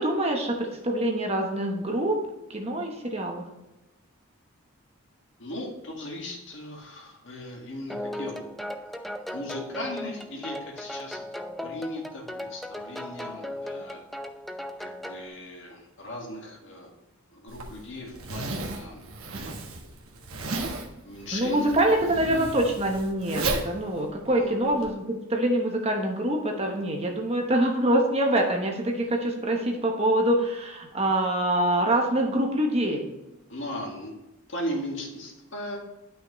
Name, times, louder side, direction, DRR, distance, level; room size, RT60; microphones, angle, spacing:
voice 1, 0.0-2.2 2.5-3.4 21.3-33.0, right 1 dB, 30° right, 2 dB, 1.0 m, -25 dB
voice 2, 5.4-8.5 9.3-11.2 11.6-14.0 14.8-16.9 17.3-19.5 21.0-21.7 22.2-22.6 24.3-24.5 33.5-34.1 34.5-35.8, left 1 dB, 55° left, 0 dB, 1.9 m, -37 dB
sound 1, 7.9-15.3, left 1 dB, ahead, 0.3 m, -37 dB
Zipper (clothing), 17.5-24.9, right 3 dB, 80° right, 1.3 m, -34 dB
10.5 x 5.9 x 3.1 m, 0.98 s
head